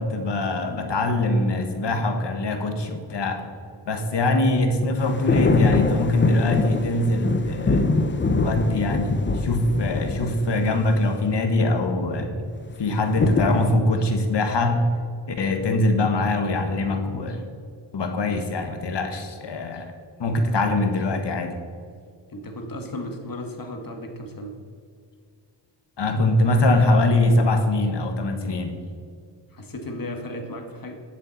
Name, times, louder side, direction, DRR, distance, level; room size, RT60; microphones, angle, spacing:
voice 1, 0.0-3.5 3.9-7.9 8.4-12.3 12.8-14.9 15.3-17.4 17.9-19.9 20.2-21.5 26.0-28.7, left 2 dB, 65° left, 5 dB, 1.4 m, -23 dB
sound 1, 5.0-11.0 13.1-13.7, left 3 dB, 25° left, 0.7 m, -23 dB
voice 2, 22.3-24.6 29.5-30.9, left 1 dB, 45° left, 4 dB, 1.6 m, -35 dB
11.0 x 7.3 x 4.1 m, 2.3 s
wide cardioid pair, 85°, 46 cm